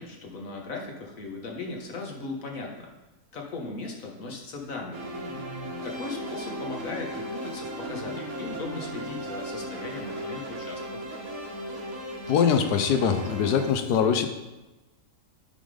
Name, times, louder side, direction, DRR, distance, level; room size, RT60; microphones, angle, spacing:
voice 1, 0.0-2.9 3.3-5.1 5.8-11.0, left 3 dB, 60° left, 1 dB, 1.5 m, -37 dB
sound 1, 4.9-13.7, equal, 65° right, 1.6 m, -36 dB
voice 2, 12.3-14.3, left 7 dB, 85° left, 8 dB, 1.3 m, -23 dB
9.0 x 3.7 x 4.9 m, 1.1 s
omnidirectional pair, 1.7 m